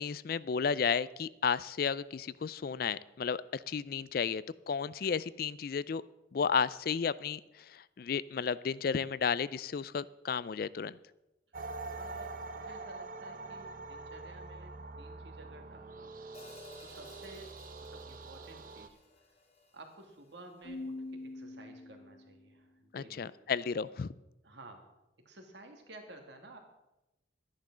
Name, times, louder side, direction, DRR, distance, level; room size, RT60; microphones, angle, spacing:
voice 1, 0.0-6.0 6.3-11.0 22.9-24.1, left 6 dB, 50° left, 18 dB, 0.3 m, -33 dB
sound 1, 11.5-18.9, right 3 dB, 45° right, 0.7 m, -45 dB
voice 2, 11.5-16.3 16.8-17.5 17.8-19.0 19.7-23.3 24.4-24.9 25.2-26.6, right 2 dB, 65° right, 4 dB, 2.4 m, -53 dB
Hi-hat, 16.3-20.5, left 4 dB, 35° left, 1.9 m, -57 dB
Keyboard (musical), 20.6-22.5, left 2 dB, 70° left, 1.7 m, -44 dB
12.5 x 10.5 x 6.1 m, 0.94 s
head